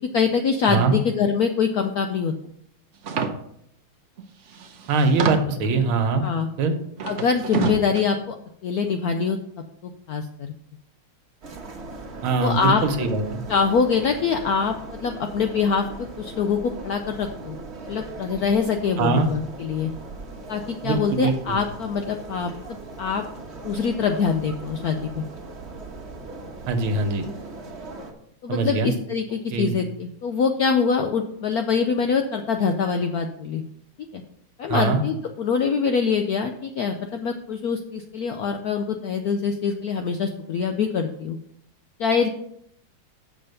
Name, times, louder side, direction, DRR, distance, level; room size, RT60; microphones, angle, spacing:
voice 1, 0.1-2.3 6.2-6.5 7.0-8.4 8.6-9.4 9.8-10.5 12.4-12.8 13.5-17.6 17.9-19.9 20.5-22.5 23.0-23.2 23.6-25.2 28.4-33.6 34.1-34.2 34.6-41.4 42.0-42.3, left 6 dB, 75° left, 5 dB, 0.8 m, -24 dB
sound 1, 3.0-3.3 4.2-4.3 4.5-5.7 7.0-8.0, right 5 dB, 60° right, 0.7 m, -27 dB
voice 2, 4.9-6.3 6.6-6.7 12.2-13.4 19.0-19.3 20.8-21.6 26.7-27.3 28.5-28.9 29.5-29.7 34.7-35.0, right 4 dB, 80° right, 6 dB, 1.9 m, -22 dB
sound 2, 11.4-28.1, right 3 dB, 40° right, 1.2 m, -39 dB
7.2 x 5.0 x 6.7 m, 0.72 s
omnidirectional pair, 2.3 m